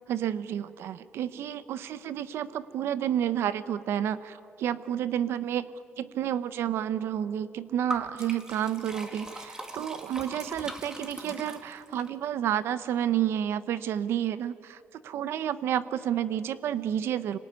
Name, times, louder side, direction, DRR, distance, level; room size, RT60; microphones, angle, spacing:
voice 1, 0.1-5.7 6.0-17.4, right 10 dB, 85° right, 15 dB, 0.9 m, -30 dB
Liquid, 7.9-12.1, right 1 dB, 15° right, 2.1 m, -40 dB
25.5 x 18.5 x 9.6 m, 2.6 s
cardioid pair, 135°, 4 cm